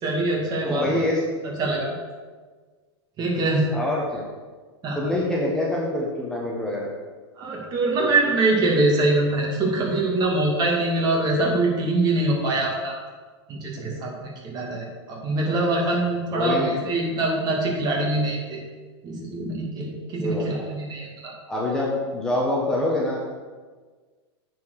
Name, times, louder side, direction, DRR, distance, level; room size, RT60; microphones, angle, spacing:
voice 1, 0.0-0.9 1.4-1.9 3.2-3.7 4.8-5.1 7.4-12.9 13.5-18.6 19.0-21.3, right 2 dB, 30° right, -1 dB, 2.3 m, -24 dB
voice 2, 0.6-1.2 3.7-4.2 4.9-6.9 15.4-15.5 16.3-16.8 20.2-20.5 21.5-23.2, left 1 dB, 5° left, -4 dB, 1.3 m, -25 dB
9.3 x 4.7 x 6.5 m, 1.4 s
hypercardioid pair, 130°, 14 cm